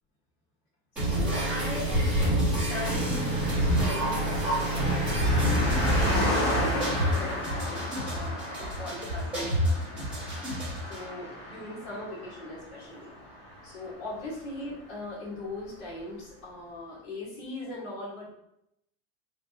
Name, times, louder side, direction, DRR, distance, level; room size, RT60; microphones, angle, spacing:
voice 1, 0.9-10.0 10.9-13.1 13.6-18.3, left 2 dB, 50° left, -5 dB, 1.5 m, -40 dB
sound 1, 1.0-11.0, equal, 5° right, 1.4 m, -27 dB
Car passing by, 2.5-14.4 14.6-14.7, left 1 dB, 15° left, 0.7 m, -33 dB
3.4 x 2.7 x 2.8 m, 0.78 s
supercardioid pair, 175°, 39 cm